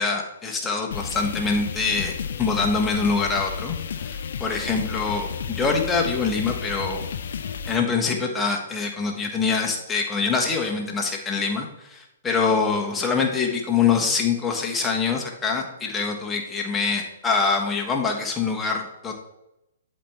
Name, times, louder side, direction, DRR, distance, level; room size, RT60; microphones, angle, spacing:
voice 1, 0.0-7.0 7.7-19.1, left 4 dB, 10° left, 1 dB, 1.3 m, -24 dB
sound 1, 0.9-7.8, left 7 dB, 55° left, 0.6 m, -32 dB
11.5 x 4.3 x 3.6 m, 0.88 s
figure-of-eight pair, 120°, 0 cm